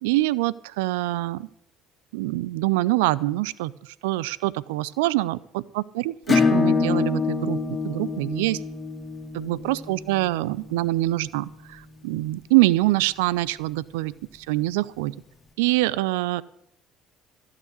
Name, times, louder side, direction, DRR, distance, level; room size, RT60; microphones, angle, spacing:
voice 1, 0.0-1.5 2.1-8.6 9.3-15.1 15.6-16.4, right 18 dB, 70° right, 20 dB, 0.4 m, -25 dB
Acoustic guitar / Strum, 6.3-11.5, left 4 dB, 30° left, 2.0 m, -26 dB
14.5 x 6.7 x 9.6 m, 0.74 s
figure-of-eight pair, 55°, 0 cm